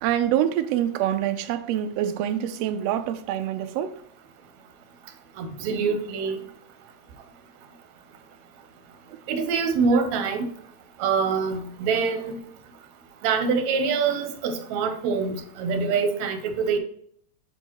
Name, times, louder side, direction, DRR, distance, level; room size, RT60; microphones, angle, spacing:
voice 1, 0.0-3.9, right 11 dB, 90° right, 1.4 m, -25 dB
voice 2, 5.4-6.4 9.3-10.5 11.0-12.4 13.2-16.8, right 5 dB, 75° right, 2.0 m, -25 dB
7.8 x 4.5 x 2.9 m
omnidirectional pair, 3.4 m